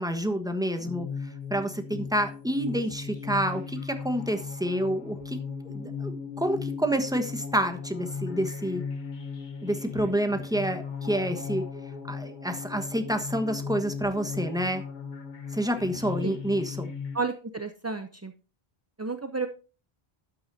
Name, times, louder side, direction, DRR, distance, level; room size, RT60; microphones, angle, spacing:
voice 1, 0.0-5.4 5.6-8.8 9.6-11.6 12.1-14.8 15.5-16.9, right 1 dB, 5° right, 6 dB, 1.2 m, -28 dB
sound 1, 0.8-17.2, left 5 dB, 50° left, 1.1 m, -37 dB
voice 2, 17.1-18.3 19.0-19.5, right 4 dB, 20° right, 8 dB, 0.4 m, -31 dB
12.5 x 9.5 x 2.7 m, 0.35 s
omnidirectional pair, 1.0 m